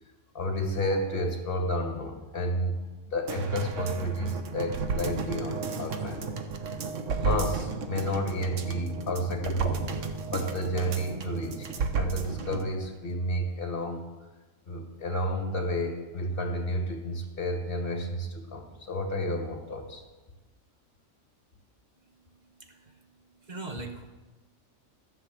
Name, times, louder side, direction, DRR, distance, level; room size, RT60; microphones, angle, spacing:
voice 1, 0.3-2.8 3.1-6.3 7.2-9.9 10.3-14.0 14.7-20.1, equal, 40° left, 4 dB, 1.8 m, -31 dB
sound 1, 3.3-12.7 13.1-13.2, right 5 dB, 65° right, 1.2 m, -33 dB
voice 2, 22.6-23.0 23.4-24.0, right 2 dB, 35° right, 4 dB, 1.1 m, -40 dB
14.0 x 5.9 x 7.5 m, 1.2 s
omnidirectional pair, 1.4 m